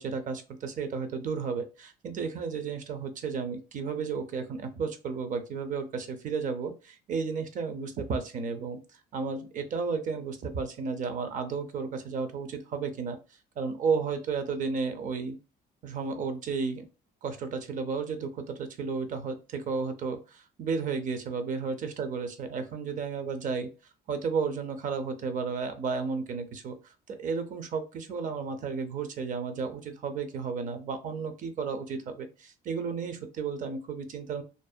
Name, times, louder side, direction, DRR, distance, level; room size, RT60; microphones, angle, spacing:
voice 1, 0.0-8.8 9.1-13.2 13.6-15.4 15.8-16.9 17.2-23.7 24.1-34.4, right 5 dB, 50° right, 8 dB, 0.5 m, -33 dB
2.6 x 2.0 x 2.4 m, 0.33 s
cardioid pair, 110°, 17 cm